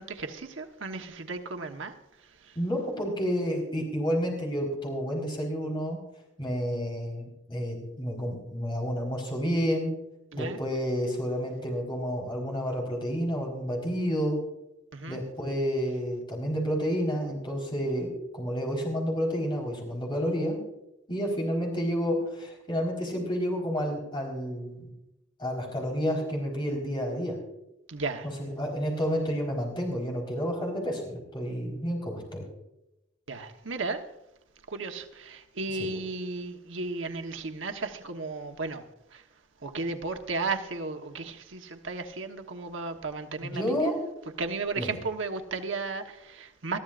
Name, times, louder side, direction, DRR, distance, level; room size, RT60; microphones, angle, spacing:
voice 1, 0.0-1.9 2.4-2.6 10.3-10.6 14.9-15.2 27.9-28.3 33.3-34.0 34.7-38.8 39.1-39.2 39.6-43.9 44.4-46.8, right 3 dB, 90° right, 6 dB, 1.2 m, -34 dB
voice 2, 2.6-6.0 6.4-9.9 10.4-14.4 15.1-20.6 21.1-24.8 25.4-27.4 28.4-32.4 35.8-35.9 43.4-44.0 44.8-45.0, equal, 25° left, 0 dB, 4.3 m, -30 dB
20.5 x 13.5 x 2.5 m, 0.88 s
head